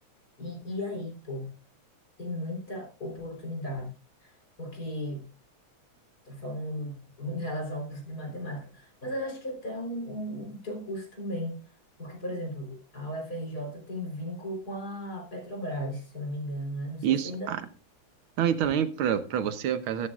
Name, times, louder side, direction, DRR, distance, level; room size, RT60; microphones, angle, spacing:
voice 1, 0.4-1.5 2.2-3.9 4.2-4.3 4.6-5.3 6.3-11.6 12.0-17.5, equal, 50° left, 4.1 m, -36 dB
voice 2, 17.0-17.6 18.4-20.1, right 9 dB, 85° right, 1.8 m, -27 dB
13.0 x 12.5 x 2.4 m
omnidirectional pair, 2.2 m